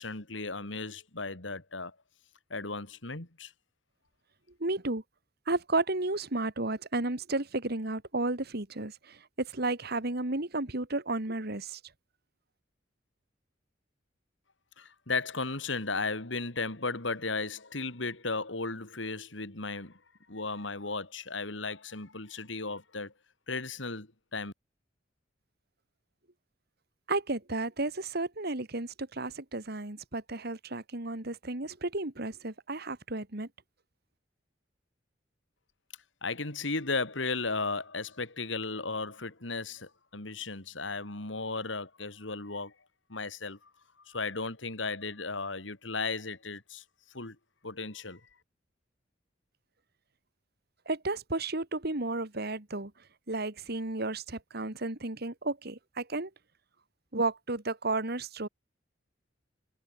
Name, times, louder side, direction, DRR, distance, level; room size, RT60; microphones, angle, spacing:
voice 1, 0.0-1.9 2.5-3.5 14.8-20.0 20.3-23.1 23.5-24.5 36.2-42.7 43.1-43.7 44.0-47.4 47.6-48.2, left 3 dB, 80° left, 3.2 m, -35 dB
voice 2, 4.6-5.0 5.5-11.8 27.1-33.5 50.9-52.9 53.3-56.3 57.1-58.5, right 2 dB, 55° right, 2.5 m, -33 dB
head